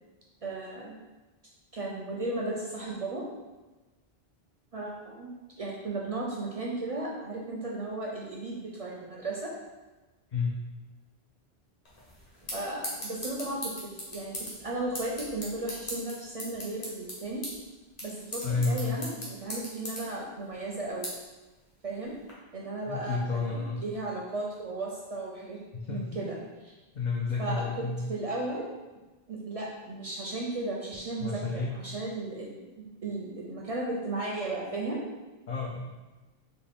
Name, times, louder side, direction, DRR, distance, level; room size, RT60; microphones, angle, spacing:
voice 1, 0.4-0.9 1.7-3.2 4.7-5.3 5.6-9.5 12.5-17.4 18.0-21.1 21.8-22.1 22.5-25.6 25.9-26.4 26.7-26.8 27.4-27.6 28.1-28.7 29.3-35.0, right 2 dB, 50° right, -3 dB, 0.4 m, -35 dB
sound 1, 11.9-22.3, equal, 40° left, 1.0 m, -41 dB
voice 2, 18.4-19.0 22.9-23.8 25.8-26.2 26.9-28.0 31.2-31.8 35.5-35.8, left 4 dB, 55° left, -3 dB, 0.5 m, -30 dB
4.1 x 2.2 x 3.4 m, 1.2 s
omnidirectional pair, 1.0 m